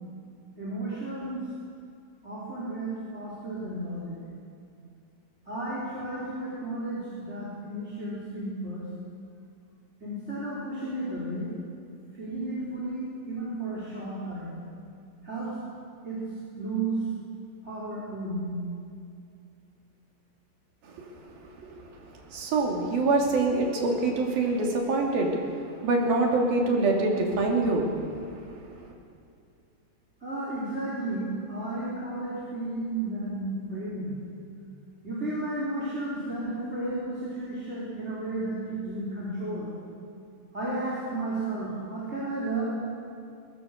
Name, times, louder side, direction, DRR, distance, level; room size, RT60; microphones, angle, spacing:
voice 1, 0.6-1.5 2.2-4.2 5.5-8.9 10.0-11.5 12.1-14.5 15.2-15.6 16.0-17.0 17.6-18.6 30.2-34.2 35.0-39.7 40.5-42.7, right 2 dB, 20° right, -7 dB, 4.0 m, -33 dB
voice 2, 22.3-25.3 25.8-28.0, right 3 dB, 80° right, 0 dB, 4.8 m, -24 dB
23.0 x 20.5 x 6.7 m, 2.4 s
omnidirectional pair, 4.2 m